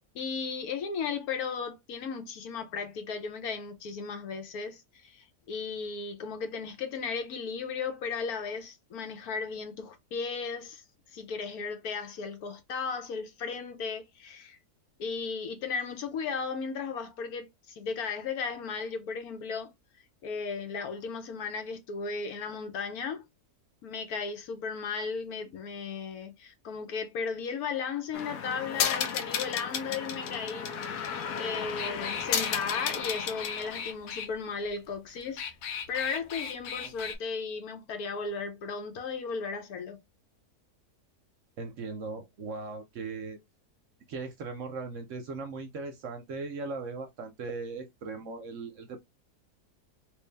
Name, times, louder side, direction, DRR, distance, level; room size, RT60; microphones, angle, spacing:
voice 1, 0.1-10.8 11.1-14.6 15.0-19.7 20.2-23.3 23.8-30.7 31.4-35.4 35.9-40.0, left 5 dB, 70° left, 1.3 m, -35 dB
sound 1, 28.1-34.3 35.2-37.2, left 7 dB, 90° left, 1.2 m, -33 dB
voice 2, 41.6-43.4 44.1-49.0, right 4 dB, 60° right, 0.9 m, -38 dB
3.2 x 2.6 x 3.3 m
omnidirectional pair, 1.7 m